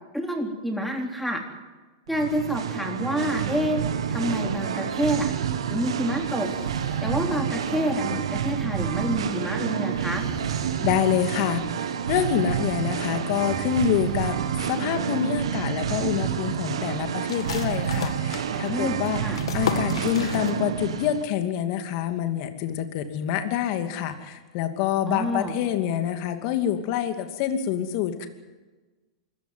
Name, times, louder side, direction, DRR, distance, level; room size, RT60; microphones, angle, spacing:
voice 1, 0.1-1.4 2.1-3.8 4.1-5.3 5.7-6.5 7.0-10.2 18.7-19.4 25.1-25.6, equal, ahead, 2 dB, 3.7 m, -28 dB
Singing, 2.1-21.2, right 8 dB, 80° right, 1.7 m, -28 dB
Breathing, 6.2-7.1 9.8-10.8 13.2-14.6, left 4 dB, 20° left, 4.5 m, -45 dB
voice 2, 10.8-14.4 14.7-19.2 19.5-28.3, left 9 dB, 50° left, 7 dB, 2.5 m, -26 dB
sound 1, 17.3-20.9 21.2-21.3 21.7-22.2, left 7 dB, 85° left, 2.0 m, -33 dB
25.0 x 15.0 x 9.4 m, 1.3 s
hypercardioid pair, 120°, 3 cm